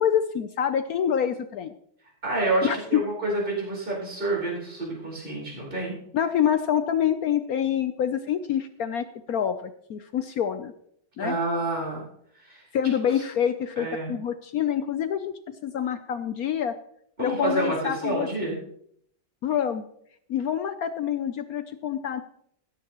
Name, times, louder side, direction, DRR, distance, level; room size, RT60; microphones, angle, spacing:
voice 1, 0.0-1.7 2.6-3.0 6.1-10.7 11.2-11.3 12.7-16.7 17.2-18.3 19.4-19.9 20.3-22.2, left 9 dB, 70° left, 10 dB, 0.9 m, -26 dB
voice 2, 2.2-6.0 11.2-12.0 12.4-12.9 13.8-14.1 17.2-18.5, right 2 dB, 25° right, -3 dB, 4.7 m, -28 dB
15.5 x 13.0 x 3.0 m, 0.68 s
omnidirectional pair, 2.1 m